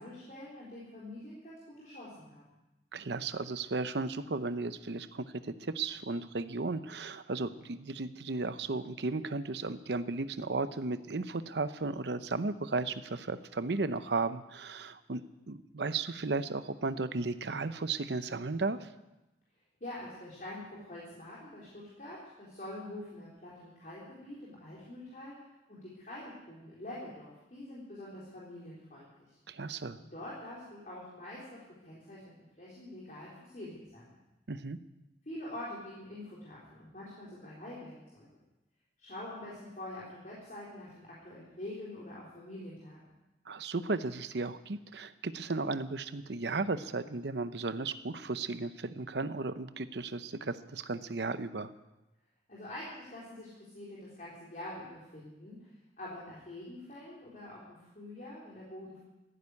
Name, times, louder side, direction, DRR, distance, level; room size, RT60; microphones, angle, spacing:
voice 1, 0.0-2.4 19.8-29.4 30.0-32.2 32.6-34.2 35.3-38.3 39.0-43.1 52.5-59.0, left 1 dB, 45° left, -8 dB, 4.1 m, -45 dB
voice 2, 2.9-15.2 15.5-18.9 29.5-30.0 34.5-34.8 43.5-51.7, right 3 dB, 80° right, 12 dB, 0.8 m, -35 dB
15.5 x 10.0 x 8.4 m, 1.0 s
head